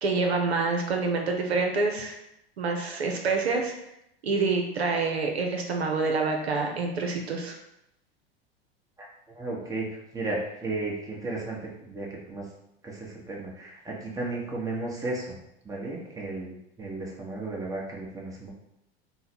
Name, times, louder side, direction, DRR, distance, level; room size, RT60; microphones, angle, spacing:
voice 1, 0.0-2.2 2.6-3.7 4.2-7.5, right 4 dB, 80° right, 2 dB, 0.7 m, -27 dB
voice 2, 9.3-12.5 12.8-15.4 15.6-18.5, right 2 dB, 10° right, -3 dB, 1.0 m, -34 dB
3.7 x 2.1 x 4.3 m, 0.81 s
figure-of-eight pair, 85°, 31 cm